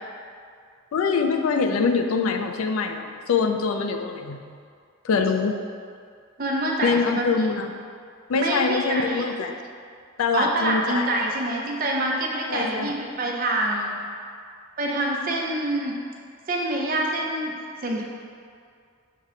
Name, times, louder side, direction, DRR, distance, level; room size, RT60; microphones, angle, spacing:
voice 1, 0.9-4.6 5.0-5.5 6.8-7.7 8.3-9.6 10.2-11.1 12.5-12.9, left 5 dB, 90° left, 5 dB, 0.4 m, -24 dB
voice 2, 6.4-7.3 8.3-9.2 10.3-14.0 14.8-16.0 16.5-17.5 17.8-18.0, right 1 dB, 45° right, -1 dB, 0.6 m, -26 dB
6.3 x 2.1 x 3.7 m, 2.2 s
head